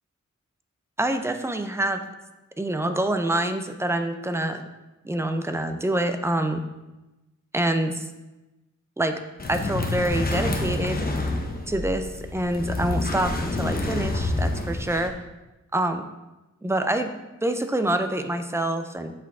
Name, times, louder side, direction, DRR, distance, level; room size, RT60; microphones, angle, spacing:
voice 1, 1.0-2.0 2.6-4.6 5.0-6.6 7.5-8.0 9.0-9.1 9.5-11.0 11.7-15.1 15.7-16.1 16.6-17.1 17.4-19.1, right 1 dB, 10° right, 7 dB, 0.5 m, -26 dB
sound 1, 9.4-15.1, left 2 dB, 30° left, 0.8 m, -28 dB
7.2 x 6.0 x 3.5 m, 1.0 s
wide cardioid pair, 130°, 29 cm